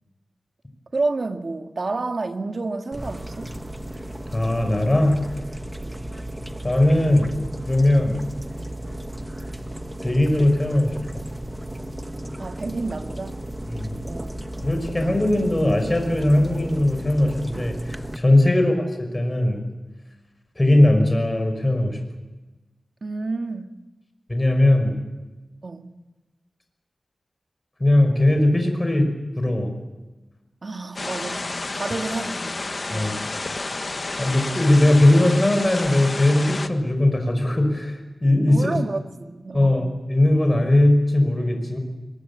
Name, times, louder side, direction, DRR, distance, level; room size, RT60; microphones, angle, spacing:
voice 1, 0.9-3.5 5.8-6.0 12.4-13.4 14.0-14.4 23.0-23.8 25.6-25.9 30.6-32.5 32.9-33.3 38.5-39.8, right 3 dB, 55° right, 1.8 m, -30 dB
sound 1, 2.9-18.2, right 1 dB, 10° right, 1.1 m, -34 dB
voice 2, 4.3-5.2 6.6-7.3 7.7-8.2 10.0-11.2 13.7-14.0 14.6-19.6 20.6-22.0 24.3-25.0 27.8-29.1 29.4-29.7 32.9-33.1 34.2-38.8 39.5-41.8, left 1 dB, 20° left, 5.6 m, -19 dB
sound 2, 31.0-36.7, left 2 dB, 45° left, 1.3 m, -30 dB
23.5 x 22.0 x 8.4 m
wide cardioid pair, 85°, 0 cm